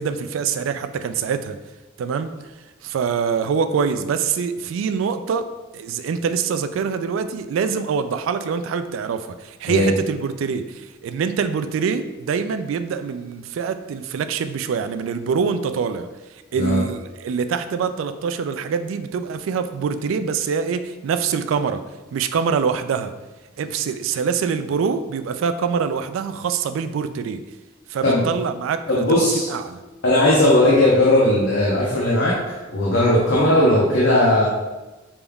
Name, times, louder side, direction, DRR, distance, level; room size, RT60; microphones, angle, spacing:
voice 1, 0.0-1.6 2.0-2.3 2.8-5.5 5.7-21.8 22.1-23.1 23.6-27.4 27.9-29.8 33.5-33.6, right 6 dB, 75° right, 10 dB, 0.3 m, -25 dB
voice 2, 28.9-29.5 30.0-34.5, left 1 dB, 70° left, -5 dB, 0.8 m, -17 dB
5.1 x 3.5 x 2.3 m, 1.1 s
head